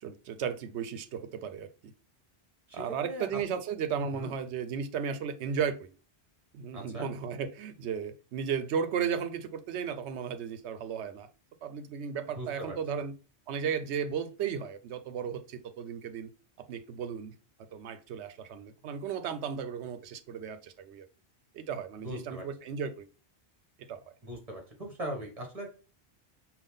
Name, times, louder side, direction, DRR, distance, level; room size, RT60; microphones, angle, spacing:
voice 1, 0.0-1.9 2.7-5.9 6.5-11.3 11.6-13.1 13.5-16.3 16.6-17.3 17.7-21.1 21.5-23.1 23.9-24.0, right 7 dB, 90° right, 0.9 m, -35 dB
voice 2, 2.7-3.6 4.0-4.3 6.7-7.1 12.4-12.8 22.0-22.4 24.2-25.7, right 1 dB, 35° right, 1.5 m, -40 dB
5.4 x 2.5 x 3.6 m
omnidirectional pair, 1.1 m